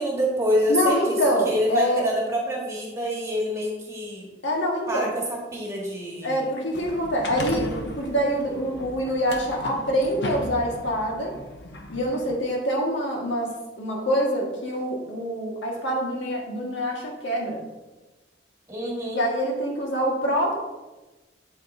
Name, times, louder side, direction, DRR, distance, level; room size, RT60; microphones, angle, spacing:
voice 1, 0.0-1.2 1.4-4.3 4.9-6.4 18.7-19.2, equal, 15° right, -3 dB, 1.7 m, -26 dB
voice 2, 0.7-2.0 4.4-5.1 6.2-7.7 8.0-11.3 11.9-17.6 19.1-20.6, equal, 80° left, -1 dB, 1.8 m, -25 dB
sound 1, 6.7-12.4, left 1 dB, 65° left, 0.9 m, -36 dB
8.5 x 8.1 x 2.7 m, 1.1 s
head